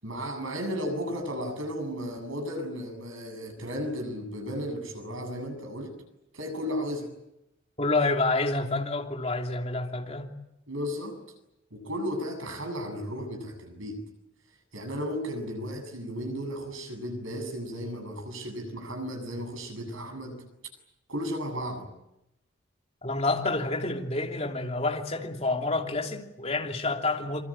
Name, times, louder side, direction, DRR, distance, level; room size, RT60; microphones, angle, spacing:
voice 1, 0.0-6.0 6.3-7.1 10.7-11.2 11.7-14.0 14.7-20.4 21.1-21.9, equal, 80° right, 7.9 m, -34 dB
voice 2, 7.8-10.3 23.0-27.4, left 2 dB, 30° left, 3.0 m, -28 dB
26.5 x 24.5 x 8.8 m
head